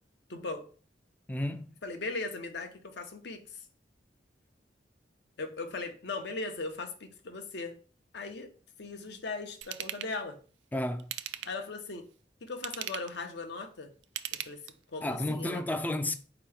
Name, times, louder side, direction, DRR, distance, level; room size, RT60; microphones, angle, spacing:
voice 1, 0.3-0.7 1.8-3.7 5.4-7.8 8.1-8.5 8.8-10.4 11.4-12.0 12.4-13.9 14.3-14.6 14.9-15.6, left 3 dB, 65° left, 0.7 m, -38 dB
voice 2, 1.3-1.7 10.7-11.1 15.0-16.1, left 1 dB, 10° left, 0.3 m, -32 dB
Ratchet pawl / Tools, 9.6-10.1 11.0-11.7 12.5-13.2 14.0-14.9 15.4-15.5, right 12 dB, 70° right, 0.3 m, -39 dB
4.6 x 2.9 x 3.4 m
head